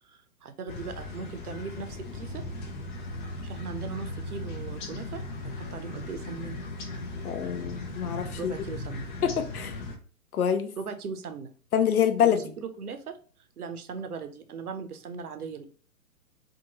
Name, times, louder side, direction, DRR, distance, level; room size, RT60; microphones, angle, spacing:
voice 1, 0.0-2.5 3.4-6.6 8.3-9.1 10.8-11.5 12.2-13.2 13.6-15.7, right 5 dB, 85° right, 9 dB, 0.6 m, -39 dB
sound 1, 0.7-10.0, left 2 dB, 35° left, 0.7 m, -37 dB
voice 2, 7.2-8.5 9.2-9.8 10.3-10.7 11.7-12.5, left 8 dB, 80° left, 8 dB, 0.7 m, -26 dB
2.7 x 2.5 x 2.8 m, 0.40 s
hypercardioid pair, 130°, 43 cm